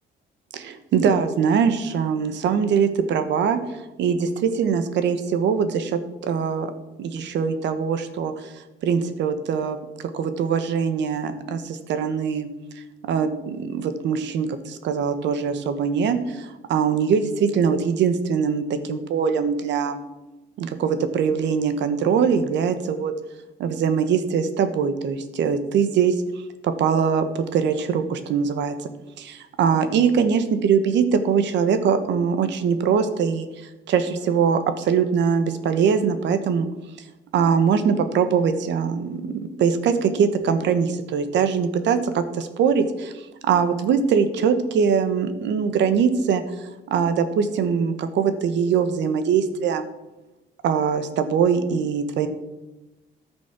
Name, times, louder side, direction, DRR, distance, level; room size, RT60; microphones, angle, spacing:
voice 1, 0.5-3.6 4.0-6.7 7.0-8.5 8.8-9.8 10.1-12.5 12.8-20.0 20.6-23.1 23.6-26.1 26.6-28.7 29.2-33.5 33.9-36.7 37.3-49.9 50.6-52.3, right 6 dB, 75° right, 10 dB, 1.2 m, -22 dB
14.0 x 6.1 x 6.0 m, 1.0 s
cardioid pair, 160°, 19 cm